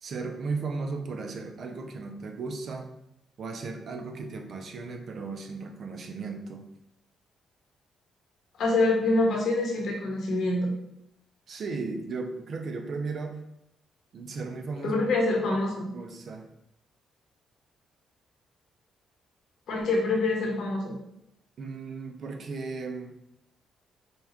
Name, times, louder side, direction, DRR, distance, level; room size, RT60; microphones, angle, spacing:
voice 1, 0.0-2.9 3.4-6.6 11.5-13.4 14.1-15.0 15.5-15.6 15.9-16.5 21.6-23.1, right 4 dB, 55° right, 4 dB, 0.5 m, -35 dB
voice 2, 8.6-10.7 14.8-15.9 19.7-20.9, left 2 dB, 70° left, -1 dB, 1.1 m, -25 dB
5.3 x 2.4 x 2.9 m, 0.82 s
cardioid pair, 90°, 0 cm